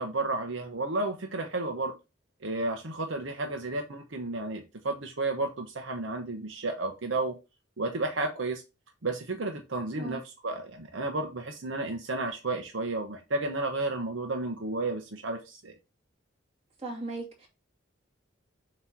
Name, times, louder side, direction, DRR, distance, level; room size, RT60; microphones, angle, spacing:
voice 1, 0.0-1.9 2.4-7.3 7.8-8.6 9.0-15.7, right 2 dB, 75° right, 0.9 m, -32 dB
voice 2, 16.8-17.5, right 2 dB, 30° right, 2.5 m, -37 dB
7.3 x 3.0 x 4.5 m
head